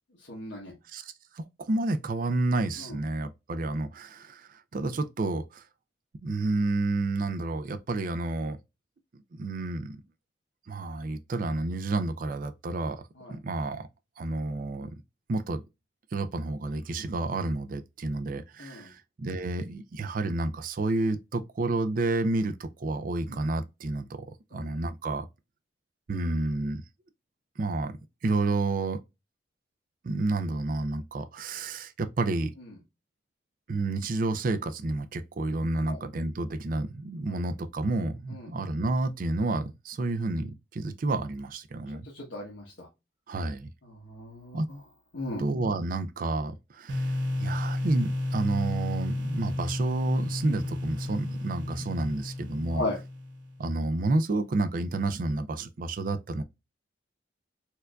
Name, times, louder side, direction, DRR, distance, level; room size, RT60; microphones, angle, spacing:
voice 1, 0.3-0.7 2.8-3.0 13.2-13.3 18.6-18.9 24.5-24.7 32.6-32.7 35.8-36.0 37.3-37.4 38.3-38.5 42.0-42.9 43.8-44.8 45.1-45.4 52.7-53.0, left 2 dB, 85° left, 1.0 m, -37 dB
voice 2, 0.9-5.6 6.2-8.6 9.4-10.0 10.7-13.0 13.3-13.9 14.2-14.9 15.3-15.6 16.1-24.3 24.5-25.3 26.1-26.8 27.6-28.0 28.2-29.0 30.0-32.5 33.7-42.1 43.3-43.7 44.5-44.7 45.4-52.8 53.6-56.4, right 2 dB, 50° right, 0.4 m, -30 dB
sound 1, 46.9-53.7, left 1 dB, 80° right, 0.9 m, -32 dB
4.4 x 2.5 x 2.2 m
head